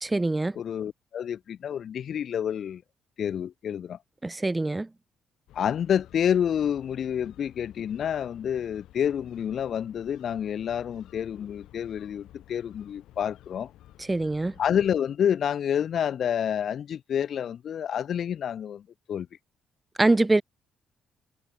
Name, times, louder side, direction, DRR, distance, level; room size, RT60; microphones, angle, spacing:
voice 1, 0.0-0.6 4.2-4.9 14.0-14.5 20.0-20.4, right 2 dB, 10° right, 0.6 m, -24 dB
voice 2, 0.5-2.8 3.2-4.0 5.5-13.7 14.6-18.8 19.1-19.3, left 9 dB, 50° left, 0.9 m, -28 dB
sound 1, 5.5-15.0, left 14 dB, 80° left, 3.5 m, -52 dB
cardioid pair, 135°, 0 cm